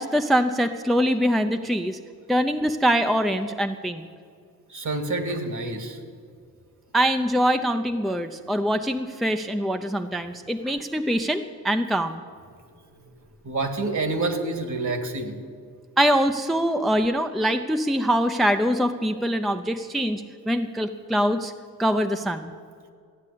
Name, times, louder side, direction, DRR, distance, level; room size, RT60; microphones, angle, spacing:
voice 1, 0.0-2.0 2.3-4.1 6.9-12.2 16.0-21.5 21.8-22.5, equal, ahead, 7 dB, 0.6 m, -23 dB
voice 2, 4.7-6.0 13.4-15.4, right 2 dB, 50° right, 7 dB, 2.2 m, -27 dB
14.5 x 9.5 x 8.4 m, 2.2 s
cardioid pair, 85°, 37 cm